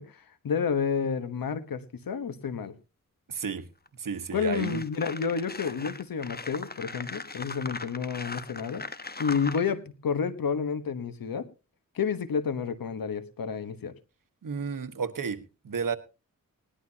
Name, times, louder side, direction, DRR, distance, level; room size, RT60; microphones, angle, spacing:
voice 1, 0.0-2.7 4.3-8.8 9.2-11.5 11.9-13.9, left 6 dB, 90° left, 12 dB, 1.3 m, -30 dB
voice 2, 3.3-3.6 4.0-4.8 14.4-16.0, right 6 dB, 70° right, 10 dB, 1.4 m, -32 dB
sound 1, 3.9-4.0 4.3-9.7, left 3 dB, 30° left, 1.1 m, -39 dB
19.5 x 11.5 x 2.9 m, 0.30 s
cardioid pair, 55°, 34 cm